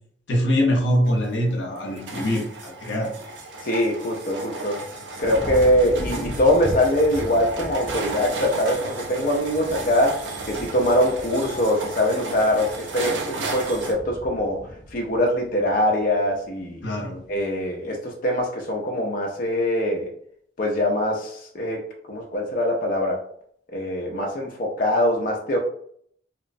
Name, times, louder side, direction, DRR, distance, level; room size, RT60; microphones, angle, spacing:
voice 1, 0.3-3.1 16.8-17.2, equal, 90° left, 1 dB, 0.7 m, -23 dB
sound 1, 1.1-13.9, right 2 dB, 85° right, 0.5 m, -34 dB
voice 2, 3.6-4.8 5.2-14.6 14.9-16.9 17.3-20.1 20.6-23.2 23.7-25.6, left 1 dB, 50° left, 0 dB, 0.5 m, -23 dB
sound 2, 5.2-16.5 16.9-17.4, equal, 25° right, 0.7 m, -38 dB
2.9 x 2.0 x 2.5 m, 0.63 s
head